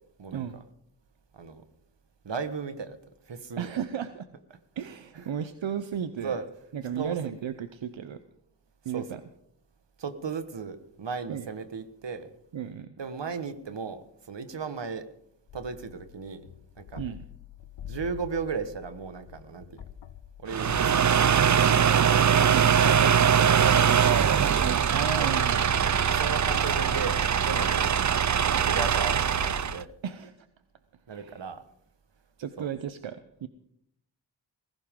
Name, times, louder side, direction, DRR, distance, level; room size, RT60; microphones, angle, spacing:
voice 1, 0.3-0.6 3.6-4.3 4.8-6.4 6.7-8.2 8.8-9.2 11.3-11.5 12.5-12.9 17.0-17.2 22.5-22.6 24.9-25.8 30.0-30.5 31.1-31.4 32.4-33.5, right 8 dB, 90° right, 11 dB, 0.8 m, -34 dB
voice 2, 1.3-1.6 2.2-3.0 3.3-3.7 5.1-5.3 6.2-6.4 6.9-7.3 8.9-9.1 10.0-12.3 13.0-14.0 14.3-15.0 15.5-16.5 16.8-17.0 17.8-19.8 20.4-22.1 22.4-24.3 24.6-25.5 26.0-28.2 28.7-29.9 31.1-31.6 32.6-32.7, right 5 dB, 70° right, 10 dB, 1.5 m, -36 dB
sound 1, 15.5-29.9, left 11 dB, 80° left, 0.8 m, -45 dB
sound 2, 20.5-29.8, right 8 dB, 40° right, 0.5 m, -22 dB
19.5 x 16.5 x 3.8 m, 0.73 s
cardioid pair, 50°, 45 cm